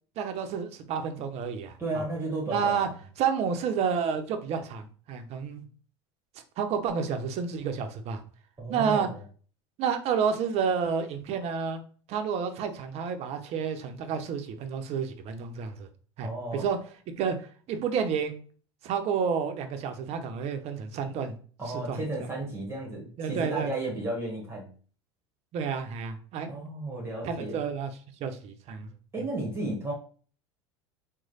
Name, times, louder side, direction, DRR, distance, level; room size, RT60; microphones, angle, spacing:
voice 1, 0.2-2.0 2.5-2.9 3.2-5.6 6.6-8.2 8.7-9.1 9.8-11.8 12.1-15.9 16.2-16.8 17.2-17.4 17.7-18.4 18.8-21.4 21.9-22.0 23.2-23.7 25.5-26.5 27.2-27.9 28.2-28.9, right 6 dB, 45° right, 7 dB, 0.6 m, -30 dB
voice 2, 1.8-2.9 8.6-9.2 16.2-16.6 21.6-24.7 26.5-27.6 29.1-29.9, right 2 dB, 15° right, -2 dB, 1.2 m, -33 dB
3.1 x 2.2 x 3.9 m, 0.42 s
hypercardioid pair, 90°, 14 cm